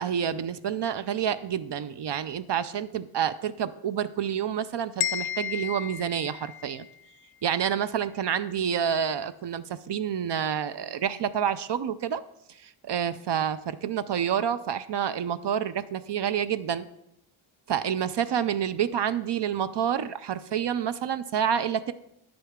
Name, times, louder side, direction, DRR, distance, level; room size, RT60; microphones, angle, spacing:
voice 1, 0.0-6.9 7.4-12.2 12.6-16.9 17.7-21.9, right 8 dB, 60° right, 13 dB, 0.5 m, -28 dB
sound 1, 5.0-7.0, left 11 dB, 50° left, 0.6 m, -33 dB
10.0 x 8.8 x 3.6 m, 0.78 s
wide cardioid pair, 120°, 50 cm